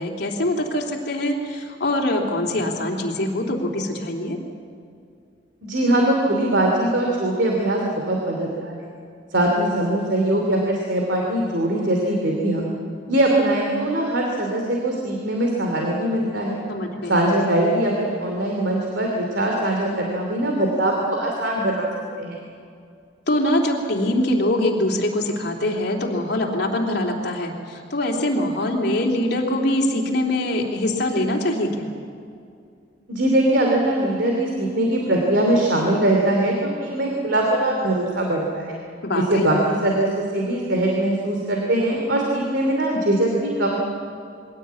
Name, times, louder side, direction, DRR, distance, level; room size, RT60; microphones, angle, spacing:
voice 1, 0.0-4.4 16.7-17.2 23.3-31.9 39.0-39.6, left 1 dB, 65° left, 0 dB, 3.2 m, -23 dB
voice 2, 5.6-8.9 9.3-12.6 13.1-16.6 17.1-21.9 22.2-22.4 33.1-38.7 39.3-43.8, right 1 dB, 75° right, 0 dB, 2.9 m, -21 dB
22.5 x 17.0 x 8.5 m, 2.4 s
head